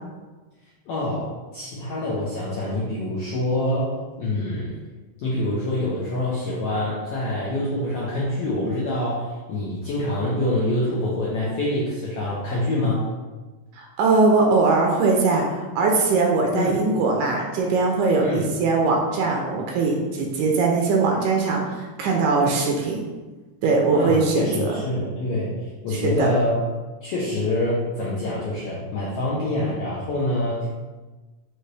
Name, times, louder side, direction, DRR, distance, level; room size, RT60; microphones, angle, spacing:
voice 1, 0.9-4.8 5.2-13.0 16.5-16.8 18.2-18.5 23.9-26.6 27.0-30.7, left 1 dB, 85° left, -7 dB, 1.3 m, -26 dB
voice 2, 13.8-23.0 23.6-24.7 25.9-26.3, right 3 dB, 80° right, 0 dB, 2.0 m, -21 dB
5.6 x 2.6 x 3.2 m, 1.3 s
omnidirectional pair, 3.6 m